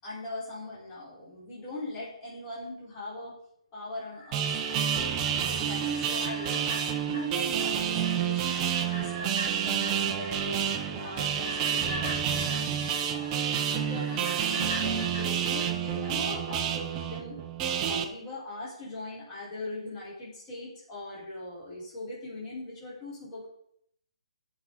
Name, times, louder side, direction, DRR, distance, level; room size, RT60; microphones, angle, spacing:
voice 1, 0.0-3.3 3.7-6.6 7.0-12.6 13.1-17.4 17.8-23.5, left 2 dB, 20° left, -8 dB, 4.8 m, -41 dB
sound 1, 4.0-16.5 16.9-17.0, left 1 dB, 45° left, 4.3 m, -43 dB
sound 2, 4.3-18.0, right 8 dB, 15° right, 0.8 m, -29 dB
15.5 x 6.1 x 4.2 m, 0.71 s
hypercardioid pair, 165°, 3 cm